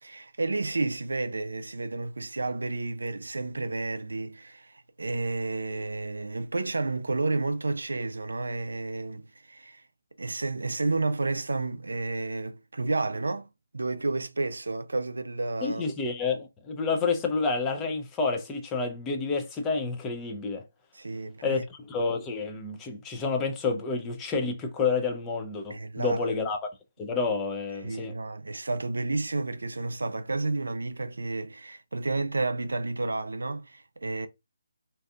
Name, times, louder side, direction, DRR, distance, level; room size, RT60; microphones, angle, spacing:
voice 1, 0.0-9.8 10.2-13.5 13.7-15.8 20.9-21.7 25.7-26.2 27.8-34.3, right 3 dB, 85° right, 0.3 m, -31 dB
voice 2, 15.6-20.6 21.4-26.6 27.0-28.1, left 4 dB, 15° left, 0.5 m, -29 dB
2.6 x 2.4 x 2.3 m
figure-of-eight pair, 155°, 0 cm